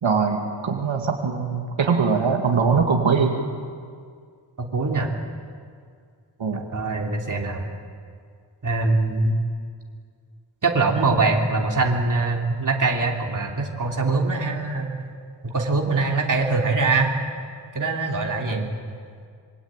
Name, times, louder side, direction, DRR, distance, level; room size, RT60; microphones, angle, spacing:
voice 1, 0.0-3.4 6.4-6.7 18.5-18.7, right 5 dB, 85° right, 2 dB, 2.5 m, -22 dB
voice 2, 4.6-5.1 6.5-7.6 8.6-9.4 10.6-14.9 15.4-17.1 17.7-18.7, right 3 dB, 45° right, 0 dB, 3.4 m, -23 dB
26.5 x 24.0 x 9.1 m, 2.1 s
wide cardioid pair, 120°, 45 cm